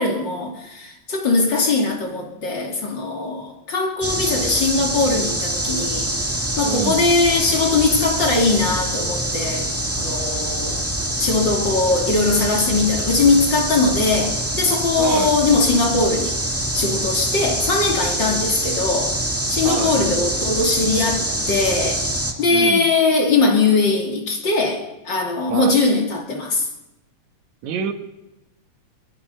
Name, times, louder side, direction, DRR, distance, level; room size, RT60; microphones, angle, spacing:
voice 1, 0.0-10.8 11.2-16.3 16.7-19.1 19.5-22.0 22.4-26.7, left 3 dB, 40° left, 2 dB, 3.1 m, -20 dB
sound 1, 4.0-22.3, right 1 dB, 5° right, 1.3 m, -25 dB
voice 2, 6.6-7.1 15.0-15.3 19.6-19.9 22.5-22.9 25.5-25.8 27.6-27.9, right 8 dB, 75° right, 6 dB, 2.7 m, -27 dB
22.5 x 22.0 x 5.5 m, 0.96 s
omnidirectional pair, 3.3 m